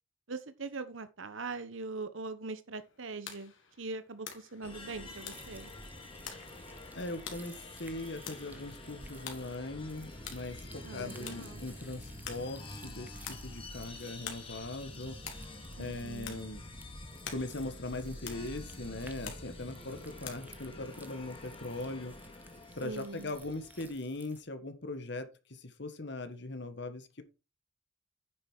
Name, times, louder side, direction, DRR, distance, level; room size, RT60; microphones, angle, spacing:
voice 1, 0.3-5.7 10.8-11.7 15.8-16.4 22.8-23.3, right 3 dB, 75° right, 1.1 m, -42 dB
sound 1, 2.7-20.3, left 7 dB, 80° left, 2.9 m, -50 dB
sound 2, 4.6-23.9, left 1 dB, 30° left, 2.4 m, -48 dB
sound 3, 5.1-24.4, right 2 dB, 10° right, 1.0 m, -58 dB
voice 2, 6.9-15.2 15.8-16.6 17.3-22.1 22.8-27.2, left 2 dB, 60° left, 1.7 m, -40 dB
9.7 x 7.0 x 4.7 m
head